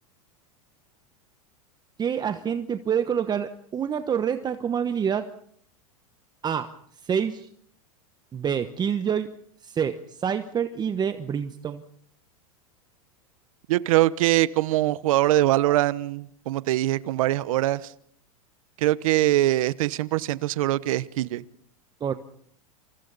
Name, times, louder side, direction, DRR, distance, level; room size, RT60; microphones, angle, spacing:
voice 1, 2.0-5.3 6.4-6.7 7.0-7.5 8.3-9.3 9.6-11.8 22.0-22.1, right 8 dB, 25° right, 9 dB, 1.1 m, -27 dB
voice 2, 13.7-17.8 18.8-21.4, right 15 dB, 70° right, 16 dB, 1.1 m, -23 dB
29.0 x 28.0 x 4.1 m, 0.64 s
hypercardioid pair, 115°, 18 cm